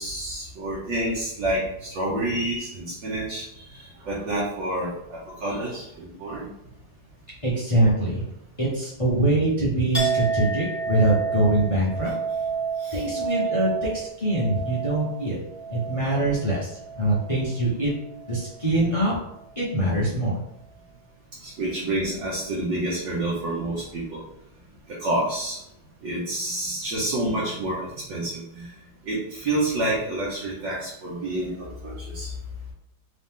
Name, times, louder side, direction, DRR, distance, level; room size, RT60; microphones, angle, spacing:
voice 1, 0.0-6.5 12.8-13.1 21.4-24.2 24.9-25.6 26.0-28.7 29.1-32.3, right 1 dB, 65° right, -6 dB, 1.5 m, -28 dB
voice 2, 7.4-8.2 8.6-12.1 12.9-15.4 15.7-17.9 18.2-19.1 19.5-20.4, right 1 dB, 45° left, -7 dB, 0.4 m, -23 dB
Chink clink, 9.9-17.6 18.0-18.6, right 5 dB, 10° right, 1.1 m, -30 dB
3.9 x 3.0 x 3.6 m, 0.83 s
omnidirectional pair, 2.3 m